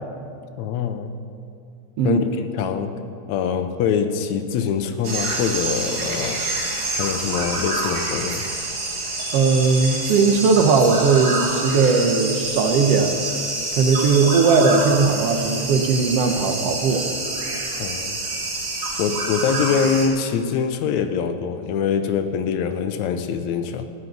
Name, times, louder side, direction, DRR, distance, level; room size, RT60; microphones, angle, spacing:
voice 1, 0.6-1.1 2.0-3.0 3.3-6.4 6.9-8.4 17.8-18.2 19.0-23.8, left 6 dB, 80° left, 8 dB, 2.0 m, -24 dB
voice 2, 2.0-2.3 9.3-13.1 13.8-17.1, right 4 dB, 65° right, 5 dB, 1.7 m, -18 dB
sound 1, 5.0-20.1, right 2 dB, 80° right, 3.7 m, -27 dB
14.0 x 6.6 x 9.3 m, 2.5 s
omnidirectional pair, 3.4 m